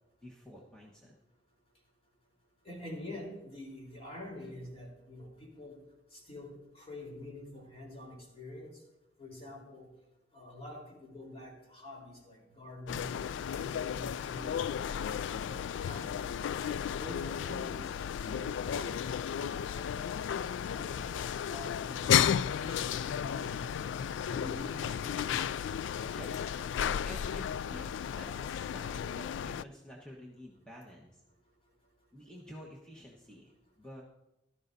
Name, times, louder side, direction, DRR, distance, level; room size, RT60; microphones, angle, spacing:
voice 1, 0.2-1.2 26.0-26.5 27.0-31.2 32.1-33.5 33.8-34.0, equal, 5° left, -3 dB, 1.2 m, -50 dB
voice 2, 2.6-5.7 6.1-8.7 9.2-9.9 10.3-13.1 13.6-14.9 15.5-17.9 18.3-20.1 20.5-23.7 24.3-25.3, left 1 dB, 35° left, -1 dB, 3.8 m, -47 dB
sound 1, 12.9-29.6, left 8 dB, 80° left, 0.3 m, -33 dB
15.5 x 12.5 x 2.7 m, 0.92 s
head